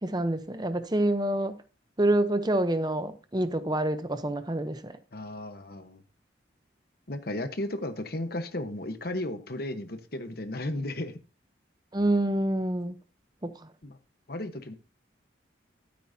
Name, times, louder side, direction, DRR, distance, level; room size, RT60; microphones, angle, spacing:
voice 1, 0.0-1.5 2.0-4.9 11.9-13.0 13.4-13.5, right 1 dB, 25° right, 0.8 m, -27 dB
voice 2, 5.1-6.0 7.1-11.2 13.8-14.0 14.3-14.7, left 1 dB, 55° left, 1.2 m, -34 dB
13.0 x 8.7 x 2.8 m
head